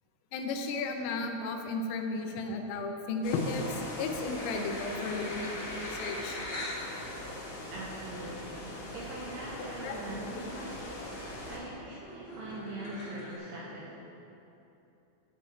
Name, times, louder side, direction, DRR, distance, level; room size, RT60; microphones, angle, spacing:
voice 1, 0.3-3.7 4.0-6.4 9.8-10.0, left 3 dB, 90° left, 4 dB, 3.4 m, -34 dB
sound 1, 3.2-11.6, left 1 dB, 70° left, 4.0 m, -41 dB
sound 2, 4.3-6.8 7.5-7.6 9.0-9.1 9.4-9.7 10.1-10.7 11.1-13.4, left 1 dB, 55° left, 2.2 m, -42 dB
voice 2, 7.7-13.9, right 2 dB, 80° right, -4 dB, 2.4 m, -42 dB
11.0 x 7.3 x 4.2 m, 2.9 s
omnidirectional pair, 5.7 m